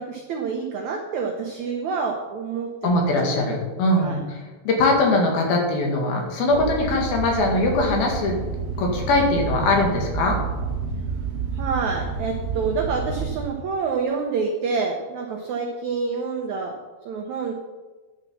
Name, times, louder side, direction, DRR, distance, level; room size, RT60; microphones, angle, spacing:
voice 1, 0.0-3.5 4.0-4.2 11.5-16.8 17.0-17.5, right 5 dB, 80° right, 3 dB, 1.6 m, -27 dB
voice 2, 2.8-8.3 8.8-10.4, left 2 dB, 70° left, 0 dB, 3.7 m, -21 dB
sound 1, 6.5-13.4, right 4 dB, 60° right, 1.4 m, -29 dB
10.5 x 6.9 x 7.2 m, 1.3 s
omnidirectional pair, 4.6 m